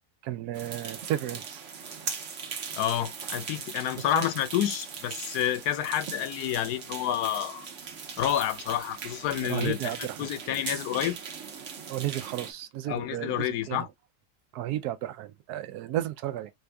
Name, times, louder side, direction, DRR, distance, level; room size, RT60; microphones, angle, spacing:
voice 1, 0.2-1.6 4.1-4.2 9.4-10.2 11.9-13.8 14.5-16.5, right 13 dB, 80° right, 1.1 m, -33 dB
sound 1, 0.5-12.5, right 6 dB, 55° right, 1.1 m, -39 dB
voice 2, 2.7-7.7 8.2-11.2 12.9-13.9, left 11 dB, 85° left, 1.2 m, -29 dB
4.3 x 2.6 x 3.3 m
omnidirectional pair, 1.7 m